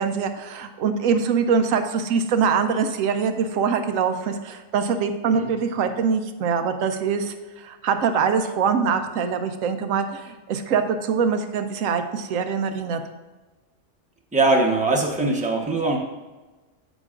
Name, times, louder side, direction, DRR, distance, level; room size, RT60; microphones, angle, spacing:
voice 1, 0.0-13.0, right 6 dB, 85° right, 7 dB, 1.0 m, -23 dB
voice 2, 14.3-16.0, right 2 dB, 5° right, 0 dB, 0.9 m, -21 dB
8.9 x 8.2 x 2.5 m, 1.2 s
omnidirectional pair, 1.4 m